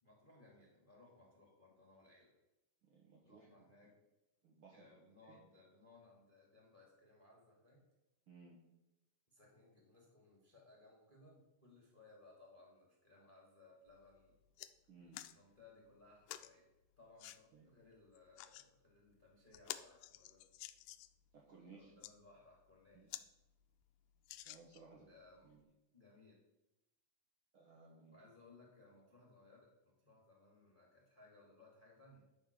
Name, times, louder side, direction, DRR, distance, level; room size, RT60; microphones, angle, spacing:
voice 1, 0.0-2.3 3.2-4.0 4.7-7.8 9.3-14.3 15.0-16.7 17.0-20.4 21.7-23.3 24.9-25.6 25.9-26.4 28.1-32.2, left 2 dB, 20° left, -3 dB, 1.4 m, -64 dB
voice 2, 2.8-3.5 4.4-4.9 5.2-5.4 8.3-8.6 14.9-15.3 17.5-17.6 21.3-21.9 22.9-23.1 24.4-25.1 25.4-25.6 27.5-28.2, right 4 dB, 60° right, -3 dB, 1.5 m, -60 dB
sound 1, 13.9-14.0 14.3-14.7 15.1-15.4 16.3-16.5 17.2-17.4 18.2-18.7 19.1-19.2 19.5-21.2 21.8-22.1 22.7-22.8 23.1-23.3 23.6-23.7 24.2-25.0 25.6-25.7, left 14 dB, 85° left, 2.1 m, -50 dB
11.0 x 4.4 x 6.4 m, 0.96 s
omnidirectional pair, 3.9 m